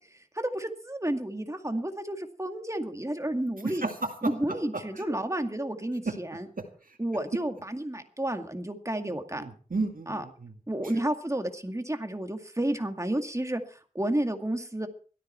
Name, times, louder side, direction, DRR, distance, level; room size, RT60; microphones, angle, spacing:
voice 1, 0.1-3.8 4.2-6.5 7.0-9.4 10.1-10.2 10.7-14.9, right 1 dB, 20° right, 6 dB, 2.1 m, -31 dB
voice 2, 3.6-4.3 4.7-5.0 6.1-6.2 6.9-7.0 9.4-10.5, right 3 dB, 70° right, 5 dB, 2.2 m, -33 dB
17.0 x 13.5 x 4.5 m, 0.41 s
wide cardioid pair, 55°, 15 cm